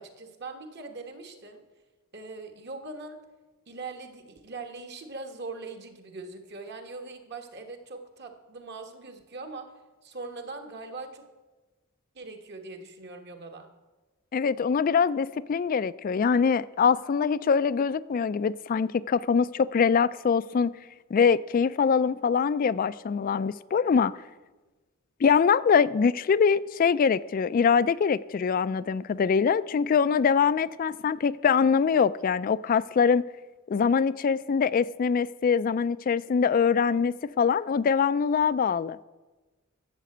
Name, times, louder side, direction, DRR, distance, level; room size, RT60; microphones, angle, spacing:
voice 1, 0.0-1.6 2.1-3.2 3.7-9.7 10.0-11.3 12.1-13.7, right 3 dB, 50° right, 1.4 m, -41 dB
voice 2, 14.3-20.7 21.1-24.1 25.2-33.3 33.7-39.0, left 6 dB, 40° left, 0.3 m, -23 dB
12.5 x 7.6 x 7.8 m
head